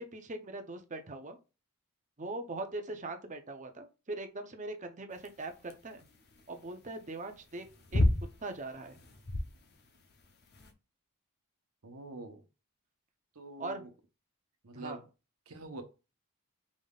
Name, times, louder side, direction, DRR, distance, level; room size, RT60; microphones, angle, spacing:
voice 1, 0.0-1.4 2.2-6.0 6.5-7.7 7.9-8.0 8.4-9.0 13.6-13.9 14.7-15.0, right 2 dB, 35° right, 0.7 m, -41 dB
sound 1, 5.2-10.7, left 1 dB, 45° left, 0.7 m, -33 dB
voice 2, 11.8-12.4 13.3-13.9 14.6-15.0 15.5-15.8, right 2 dB, 75° right, 1.0 m, -45 dB
5.1 x 3.6 x 2.4 m
head